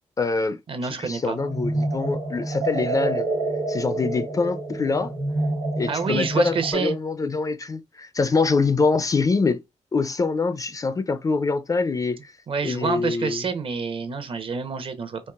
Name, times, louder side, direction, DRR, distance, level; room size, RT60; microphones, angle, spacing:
voice 1, 0.2-3.3 3.7-5.1 5.8-9.6 9.9-12.3 12.6-13.4, left 4 dB, 30° left, 0.4 m, -24 dB
voice 2, 0.7-1.4 5.9-7.0 12.5-15.3, right 5 dB, 50° right, 0.8 m, -27 dB
sound 1, 1.3-6.7, right 2 dB, 65° right, 1.3 m, -28 dB
4.5 x 3.0 x 2.3 m
cardioid pair, 115°, 12 cm